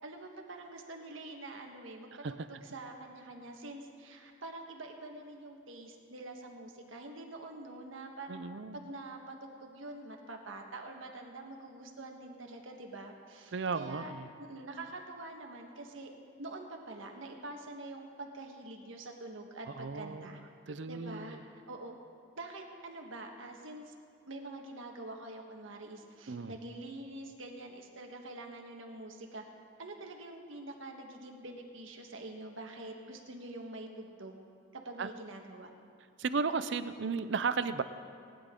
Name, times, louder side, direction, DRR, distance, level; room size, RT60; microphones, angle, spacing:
voice 1, 0.0-8.4 8.7-14.1 14.4-16.1 16.4-20.4 20.9-21.4 21.7-22.0 22.3-23.9 24.3-29.4 29.8-34.4 34.7-35.7, right 2 dB, 75° right, 2 dB, 1.4 m, -46 dB
voice 2, 8.3-8.9 13.5-14.3 19.8-21.4 26.3-26.5 35.0-35.1 36.2-37.8, right 4 dB, 60° right, 12 dB, 0.5 m, -35 dB
19.0 x 10.5 x 3.8 m, 2.4 s
head